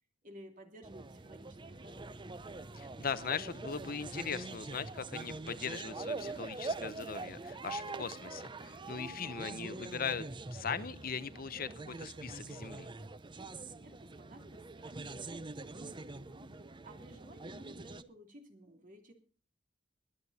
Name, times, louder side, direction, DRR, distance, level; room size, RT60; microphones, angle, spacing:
voice 1, 0.2-2.2 13.3-16.5 16.8-19.1, equal, 45° right, 4 dB, 2.8 m, -54 dB
sound 1, 0.8-18.0, right 3 dB, 25° right, 0.6 m, -44 dB
voice 2, 2.7-10.2 10.5-11.7 12.0-12.9, left 6 dB, 50° left, 14 dB, 0.7 m, -39 dB
sound 2, 7.8-13.2, right 2 dB, 70° right, 1.4 m, -62 dB
21.5 x 8.6 x 4.1 m, 0.37 s
head